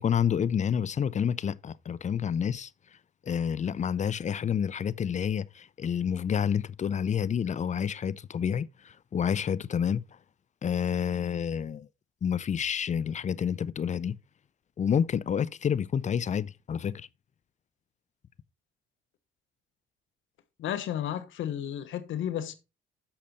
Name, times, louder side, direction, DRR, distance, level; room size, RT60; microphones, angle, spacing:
voice 1, 0.0-2.7 3.3-10.0 10.6-11.9 12.2-14.2 14.8-17.1, left 8 dB, 35° left, 0.5 m, -29 dB
voice 2, 20.6-22.5, left 10 dB, 75° left, 1.2 m, -32 dB
8.6 x 6.5 x 4.2 m
cardioid pair, 90°, 20 cm